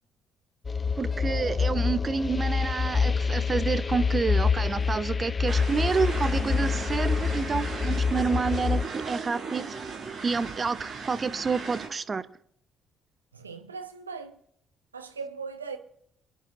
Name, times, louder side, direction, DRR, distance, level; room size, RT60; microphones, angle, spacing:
sound 1, 0.6-8.9, left 5 dB, 35° left, 0.5 m, -27 dB
voice 1, 1.0-9.7 10.2-12.3, right 4 dB, 35° right, 0.8 m, -29 dB
sound 2, 5.5-11.9, right 5 dB, 50° right, 5.5 m, -37 dB
voice 2, 13.3-14.3 14.9-15.8, right 5 dB, 85° right, 0.8 m, -38 dB
28.5 x 10.0 x 2.6 m
figure-of-eight pair, 45°, 0 cm